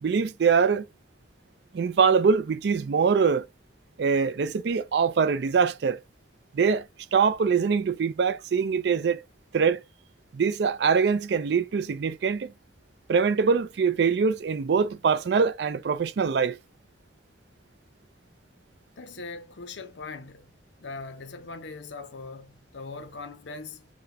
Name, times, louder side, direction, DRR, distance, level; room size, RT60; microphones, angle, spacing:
voice 1, 0.0-0.9 1.7-3.4 4.0-6.0 6.5-6.9 7.1-9.2 9.5-9.8 10.3-12.5 13.1-16.6, right 5 dB, 65° right, 0.4 m, -23 dB
voice 2, 19.0-20.5 20.8-23.9, left 3 dB, 80° left, 0.7 m, -40 dB
6.1 x 2.2 x 2.6 m
head